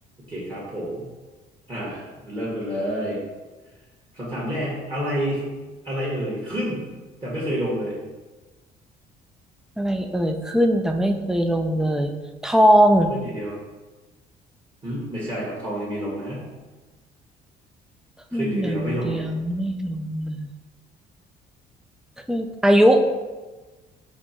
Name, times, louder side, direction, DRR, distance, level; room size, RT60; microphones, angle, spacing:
voice 1, 0.2-1.0 1.7-3.2 4.1-5.4 5.8-6.9 7.2-7.9 13.1-13.6 14.8-16.5 18.3-19.2, equal, 25° right, -7 dB, 1.5 m, -29 dB
voice 2, 9.8-12.1 12.4-13.1 18.3-20.5 22.3-23.0, equal, 5° right, 5 dB, 0.3 m, -20 dB
4.2 x 2.8 x 4.3 m, 1.2 s
cardioid pair, 110°, 17 cm